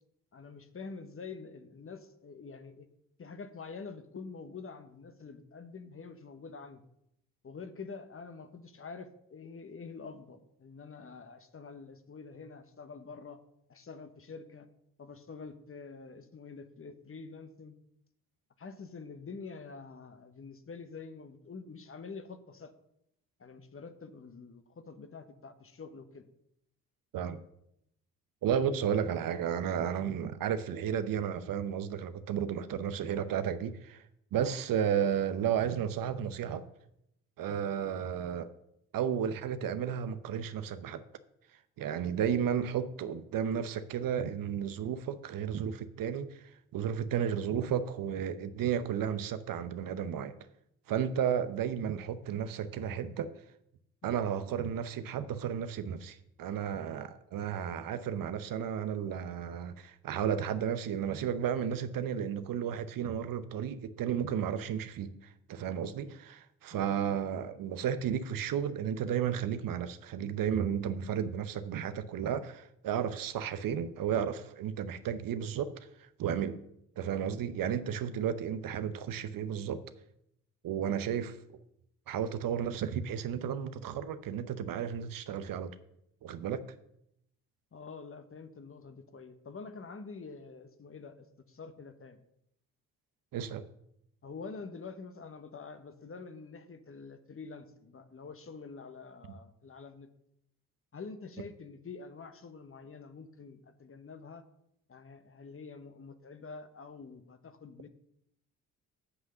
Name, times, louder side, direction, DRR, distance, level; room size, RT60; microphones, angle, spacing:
voice 1, 0.3-2.9 3.2-6.8 7.4-13.4 13.7-14.7 15.0-17.8 18.6-22.7 23.4-26.3 54.0-54.1 66.7-66.8 87.7-92.2 94.2-100.1 100.9-104.4 104.9-107.9, left 4 dB, 35° left, 1.2 m, -46 dB
voice 2, 28.4-34.0 34.3-36.6 37.4-38.5 38.9-41.0 41.8-46.4 46.7-50.3 50.9-53.3 54.0-65.1 65.5-75.7 76.2-76.6 77.0-79.8 80.6-81.6 82.1-85.7 86.2-86.7 93.3-93.7, right 8 dB, 60° right, 0.8 m, -33 dB
8.1 x 5.7 x 6.7 m
hypercardioid pair, 50°, 39 cm